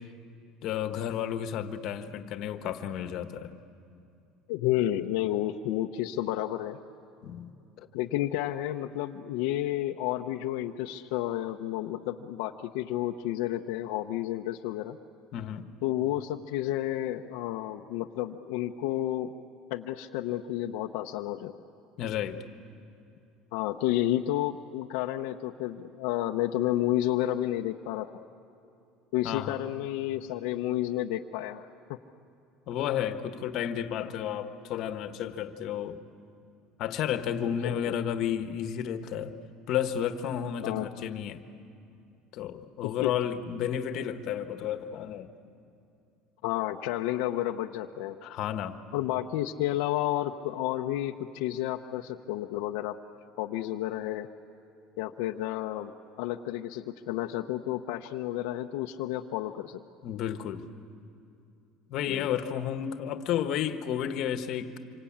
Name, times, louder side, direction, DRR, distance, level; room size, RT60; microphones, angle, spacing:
voice 1, 0.6-3.5 7.2-7.5 7.8-7.9 15.3-15.7 22.0-22.4 29.2-29.6 32.7-36.0 36.8-39.3 39.7-41.4 42.3-45.3 48.2-48.8 60.0-60.7 61.9-64.8, left 9 dB, 50° left, 8 dB, 1.3 m, -32 dB
voice 2, 4.5-6.8 7.9-15.0 15.8-19.3 19.7-21.5 23.5-28.1 29.1-32.0 37.6-37.9 40.6-40.9 43.0-43.1 46.4-48.2 48.9-53.0 53.4-54.3 55.0-55.9 56.2-59.8 62.0-62.3, left 13 dB, 80° left, 3 dB, 0.8 m, -31 dB
26.5 x 25.0 x 8.7 m, 2.6 s
cardioid pair, 155°, 0 cm